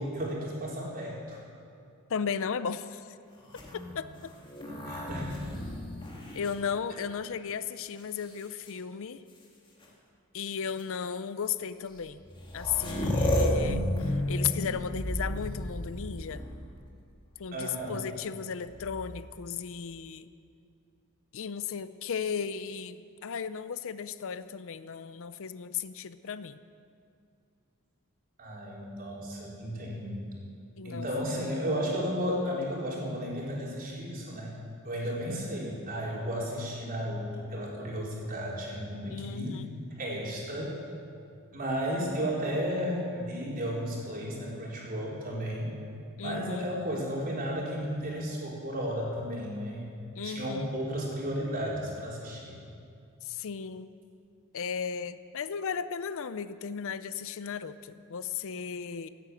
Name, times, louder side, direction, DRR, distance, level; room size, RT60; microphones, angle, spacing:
voice 1, 0.0-1.4 4.7-5.4 17.5-18.0 28.4-30.2 30.8-34.5 34.8-39.6 40.0-40.8 41.5-45.7 46.2-49.9 50.2-52.6, equal, 45° right, -4 dB, 4.1 m, -33 dB
voice 2, 2.1-3.1 3.7-4.3 6.3-9.2 10.3-12.2 12.5-16.5 17.4-20.3 21.3-26.6 30.8-31.1 39.1-39.7 46.2-46.7 50.2-50.7 53.2-53.9 54.5-59.1, left 7 dB, 65° left, 13 dB, 0.5 m, -35 dB
sound 1, 3.4-7.3 8.0-8.7 9.8-9.9 10.6-10.8 12.0-12.1 12.2-16.7 18.6-19.3, left 1 dB, 25° left, 2.3 m, -32 dB
16.5 x 9.1 x 8.4 m, 2.4 s
head